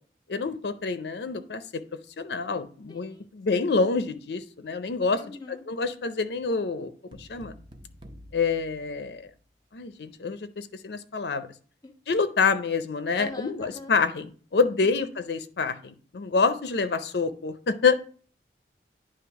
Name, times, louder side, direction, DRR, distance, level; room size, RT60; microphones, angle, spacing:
voice 1, 0.3-1.8 2.2-5.2 5.7-6.9 7.2-7.5 8.3-9.2 9.7-11.5 12.1-17.9, left 4 dB, 75° left, 11 dB, 0.5 m, -27 dB
voice 2, 2.9-3.3 3.5-3.8 5.1-5.7 11.8-11.9 13.1-14.0 14.8-15.1, left 2 dB, 20° left, 7 dB, 0.6 m, -43 dB
sound 1, 7.1-9.6, equal, 25° right, 0.7 m, -49 dB
9.6 x 3.2 x 4.7 m, 0.43 s
head